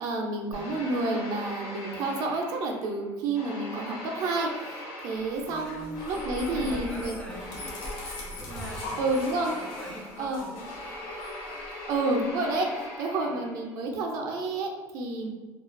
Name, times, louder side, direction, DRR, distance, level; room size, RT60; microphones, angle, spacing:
voice 1, 0.0-7.1 8.0-8.1 9.0-9.6 10.2-10.4 11.9-15.3, right 2 dB, 55° right, 1 dB, 0.4 m, -30 dB
sound 1, 0.5-2.9 3.3-13.7, left 1 dB, 55° left, 0.8 m, -41 dB
sound 2, 5.3-12.3, left 1 dB, 90° left, 0.5 m, -41 dB
voice 2, 5.5-7.8 8.2-9.0 9.5-10.7 11.1-11.3 13.2-13.5 15.2-15.3, equal, 15° left, -2 dB, 0.4 m, -44 dB
2.3 x 2.2 x 2.4 m, 1.3 s
cardioid pair, 165°, 7 cm